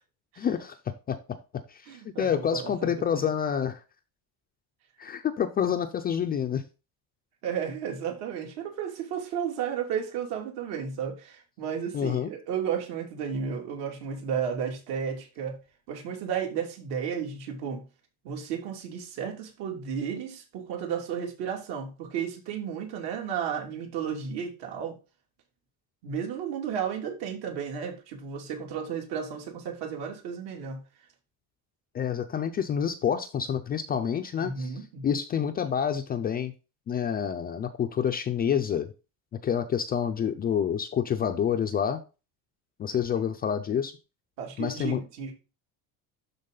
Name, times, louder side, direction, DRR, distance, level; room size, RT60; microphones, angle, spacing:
voice 1, 0.4-0.8 1.1-1.4 1.7-1.8 2.2-3.8 5.0-6.6 11.9-12.3 31.9-34.7 35.0-36.5 36.9-38.9 39.3-42.0 42.8-43.9 44.6-45.0, left 8 dB, 25° left, 7 dB, 0.3 m, -28 dB
voice 2, 1.9-3.2 7.4-15.6 15.9-17.8 18.2-25.0 26.0-30.8 34.4-35.1 44.4-45.3, right 7 dB, 70° right, 1 dB, 2.9 m, -33 dB
12.0 x 4.0 x 3.8 m, 0.31 s
cardioid pair, 170°, 41 cm